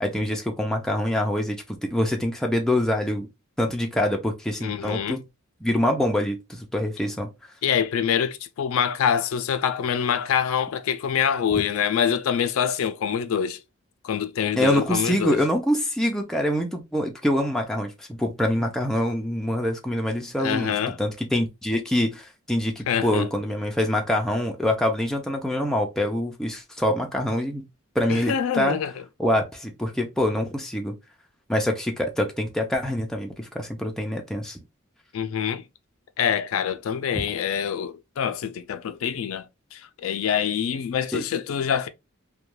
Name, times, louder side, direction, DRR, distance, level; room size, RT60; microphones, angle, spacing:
voice 1, 0.0-3.3 3.6-5.2 5.6-7.3 14.6-27.6 28.0-28.8 29.2-31.0 31.5-34.6 37.1-37.3 41.1-41.2, left 1 dB, ahead, 0.4 m, -25 dB
voice 2, 4.6-5.2 7.6-13.6 14.0-15.4 20.4-21.0 22.9-23.3 28.1-28.9 35.1-35.7 36.2-41.9, left 8 dB, 80° left, 0.3 m, -25 dB
2.2 x 2.2 x 3.0 m
head